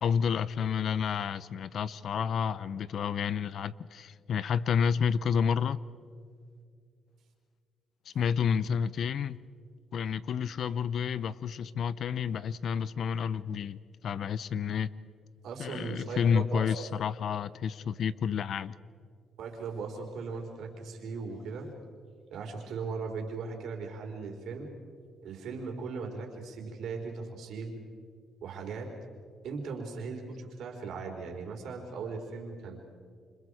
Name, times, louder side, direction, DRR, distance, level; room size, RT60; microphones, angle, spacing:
voice 1, 0.0-5.8 8.1-9.4 9.9-14.9 15.6-18.7, left 7 dB, 65° left, 0.6 m, -30 dB
voice 2, 15.4-16.7 19.4-21.7 22.3-24.7 25.2-27.7 28.4-28.9 29.4-32.8, right 4 dB, 75° right, 4.0 m, -38 dB
28.5 x 26.0 x 4.9 m
cardioid pair, 90°, 0 cm